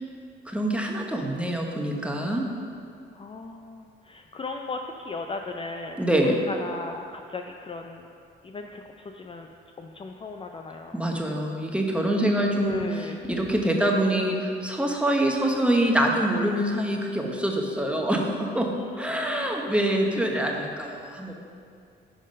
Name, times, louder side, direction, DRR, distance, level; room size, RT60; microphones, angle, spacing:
voice 1, 0.5-2.5 6.0-6.4 10.9-18.7 19.0-21.3, right 1 dB, 5° right, 1 dB, 1.0 m, -25 dB
voice 2, 3.1-8.1 8.4-9.5 9.8-11.0 12.6-13.2 18.7-19.7, left 3 dB, 25° left, 3 dB, 0.4 m, -37 dB
10.5 x 3.8 x 5.3 m, 2.4 s
cardioid pair, 90°, 20 cm